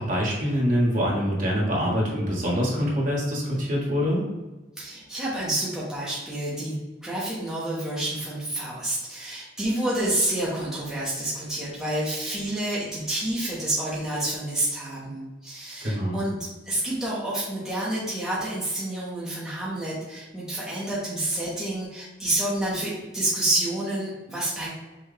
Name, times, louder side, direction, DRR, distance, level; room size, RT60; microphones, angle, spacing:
voice 1, 0.0-4.2 15.8-16.2, equal, 45° right, -5 dB, 1.3 m, -24 dB
voice 2, 4.8-6.8 7.0-16.3 16.7-24.7, right 1 dB, 5° right, -8 dB, 0.9 m, -29 dB
5.6 x 2.6 x 3.3 m, 1.2 s
head